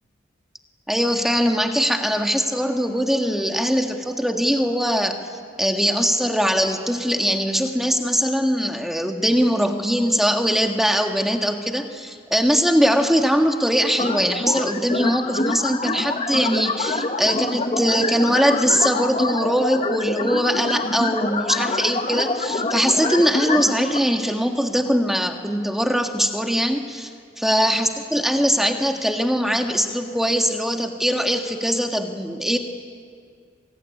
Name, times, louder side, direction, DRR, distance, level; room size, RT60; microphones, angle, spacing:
voice 1, 0.9-5.2 5.6-27.1 27.4-32.6, equal, ahead, 4 dB, 1.7 m, -21 dB
sound 1, 14.0-24.0, left 2 dB, 30° left, 1.4 m, -26 dB
26.0 x 22.0 x 9.8 m, 2.2 s
head